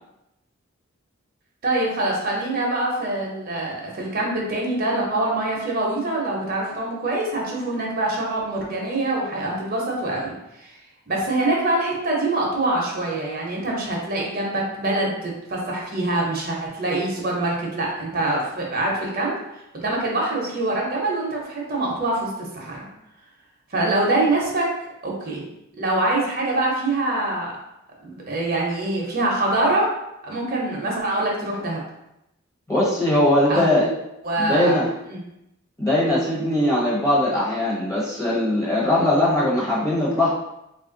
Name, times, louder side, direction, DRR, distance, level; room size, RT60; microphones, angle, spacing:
voice 1, 1.6-10.3 10.6-10.7 11.1-19.3 19.7-22.8 23.7-24.7 25.0-25.4 25.8-27.5 28.0-30.0 30.2-31.8 33.5-33.9 34.2-34.8 35.1-35.2, right 2 dB, 45° right, -2 dB, 0.8 m, -24 dB
voice 2, 32.7-33.9 34.4-34.9 35.8-40.3, left 1 dB, 15° left, -6 dB, 1.0 m, -20 dB
3.2 x 2.5 x 3.8 m, 0.85 s
head